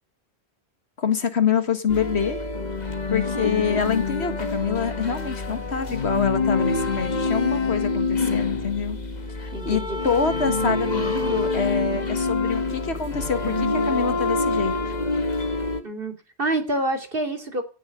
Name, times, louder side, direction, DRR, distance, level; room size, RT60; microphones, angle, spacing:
voice 1, 1.0-2.4 3.1-9.0 9.4-14.9, left 6 dB, 75° left, 9 dB, 2.0 m, -26 dB
sound 1, 1.9-15.8, left 3 dB, 40° left, 1.8 m, -26 dB
voice 2, 3.2-3.8 9.5-10.0 15.8-17.6, right 1 dB, 55° right, 5 dB, 3.2 m, -28 dB
17.0 x 8.9 x 6.8 m, 0.35 s
omnidirectional pair, 1.1 m